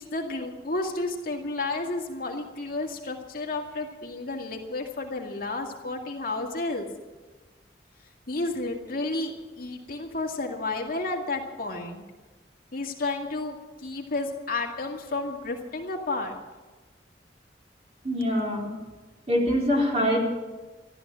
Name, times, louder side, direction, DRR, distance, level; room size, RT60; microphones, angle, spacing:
voice 1, 0.0-6.9 8.3-12.0 12.7-16.4, left 2 dB, 55° left, 1 dB, 2.2 m, -31 dB
voice 2, 18.0-18.7 19.3-20.2, equal, 35° right, -2 dB, 4.1 m, -24 dB
14.0 x 13.0 x 7.5 m, 1.2 s
head